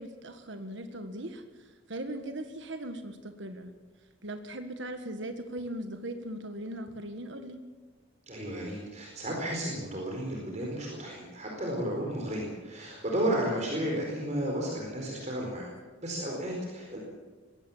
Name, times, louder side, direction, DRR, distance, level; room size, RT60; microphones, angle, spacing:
voice 1, 0.0-3.7 4.2-7.6, right 1 dB, 60° right, 7 dB, 1.6 m, -39 dB
voice 2, 8.3-15.7 16.0-17.0, right 1 dB, 35° right, -1 dB, 4.5 m, -33 dB
23.0 x 17.5 x 7.3 m, 1.4 s
head